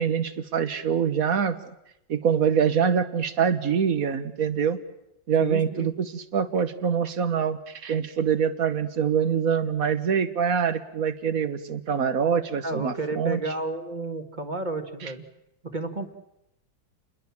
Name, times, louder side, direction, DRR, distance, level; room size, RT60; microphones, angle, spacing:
voice 1, 0.0-1.6 2.1-4.8 5.3-13.4 15.0-15.1, right 7 dB, 45° right, 12 dB, 1.7 m, -25 dB
voice 2, 5.4-5.9 12.6-15.3 15.6-16.2, right 3 dB, 25° right, 7 dB, 1.9 m, -32 dB
29.5 x 21.5 x 7.3 m, 0.83 s
omnidirectional pair, 2.2 m